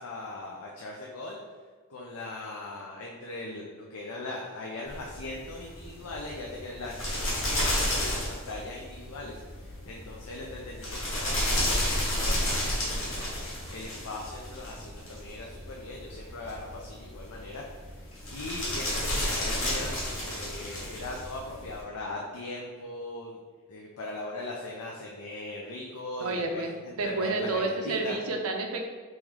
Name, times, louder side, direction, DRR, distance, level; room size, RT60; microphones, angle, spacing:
voice 1, 0.0-1.4 1.9-9.4 9.9-13.3 13.7-17.6 18.3-23.4 23.7-28.2, left 2 dB, 85° left, -2 dB, 0.5 m, -40 dB
sound 1, 4.9-21.8, left 1 dB, 65° left, 1.2 m, -32 dB
voice 2, 26.2-26.7 27.0-28.9, right 2 dB, 90° right, 3 dB, 0.6 m, -30 dB
3.1 x 3.0 x 3.6 m, 1.4 s
head